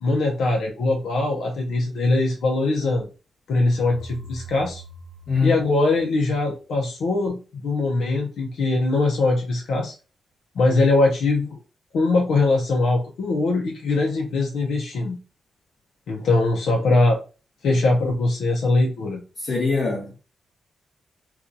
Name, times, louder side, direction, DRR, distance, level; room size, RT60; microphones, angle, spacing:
voice 1, 0.0-3.1 3.5-4.8 5.4-9.9 10.6-11.6 11.9-15.2 16.1-17.2 17.6-19.2, left 2 dB, 80° left, 0.6 m, -21 dB
sound 1, 3.6-6.5, right 1 dB, 55° right, 0.8 m, -42 dB
voice 2, 5.3-5.6 19.4-20.2, left 4 dB, 55° left, 1.3 m, -23 dB
4.3 x 2.3 x 2.6 m
wide cardioid pair, 145°, 0 cm